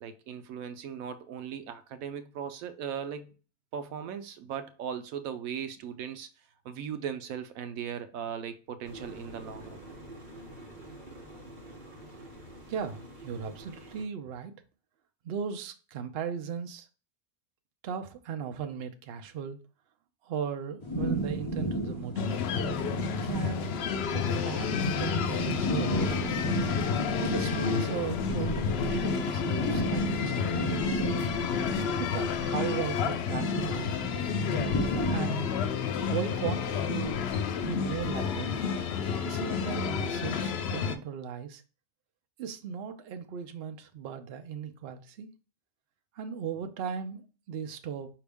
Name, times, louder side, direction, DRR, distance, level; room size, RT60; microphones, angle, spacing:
voice 1, 0.0-3.3 3.7-6.3 6.6-9.8, right 8 dB, 85° right, 1.0 m, -38 dB
sound 1, 8.8-14.0, right 1 dB, 40° right, 1.2 m, -47 dB
voice 2, 12.7-14.5 15.2-16.9 17.8-19.6 20.2-22.4 23.2-23.6 24.1-26.5 27.2-31.1 32.0-34.0 35.1-35.5 36.1-37.2 37.6-38.6 39.2-41.6 42.4-45.3 46.1-48.1, right 7 dB, 60° right, 0.7 m, -37 dB
sound 2, 20.8-35.2, right 1 dB, 30° left, 0.6 m, -34 dB
sound 3, 22.1-40.9, left 6 dB, 65° left, 0.7 m, -30 dB
5.1 x 2.9 x 3.4 m
omnidirectional pair, 1.4 m